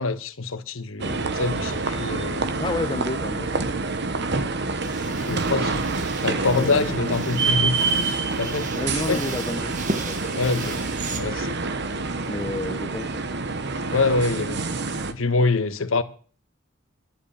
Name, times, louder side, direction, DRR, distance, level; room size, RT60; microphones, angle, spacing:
voice 1, 0.0-2.5 5.2-5.9 6.2-8.7 9.1-9.2 10.4-10.8 11.2-11.5 13.9-14.6 15.1-16.0, left 3 dB, 85° left, 1.2 m, -25 dB
sound 1, 1.0-15.1, right 3 dB, 55° right, 1.1 m, -27 dB
voice 2, 2.6-3.8 6.5-7.0 8.7-10.8 12.3-13.2, left 2 dB, 20° left, 0.9 m, -31 dB
sound 2, 4.8-11.2, right 3 dB, 40° right, 1.6 m, -37 dB
11.5 x 8.0 x 8.6 m
head